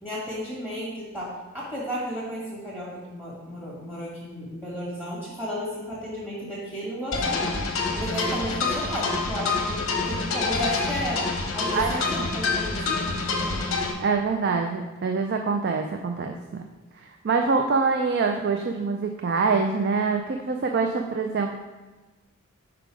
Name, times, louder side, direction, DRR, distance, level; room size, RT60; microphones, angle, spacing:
voice 1, 0.0-7.6 7.9-11.2 11.5-13.9, equal, 10° right, -8 dB, 1.8 m, -33 dB
sound 1, 7.1-13.9, left 3 dB, 65° left, 1.0 m, -27 dB
voice 2, 11.7-12.1 14.0-16.6 17.2-21.5, right 4 dB, 50° right, 4 dB, 0.4 m, -25 dB
5.2 x 4.6 x 4.8 m, 1.2 s
head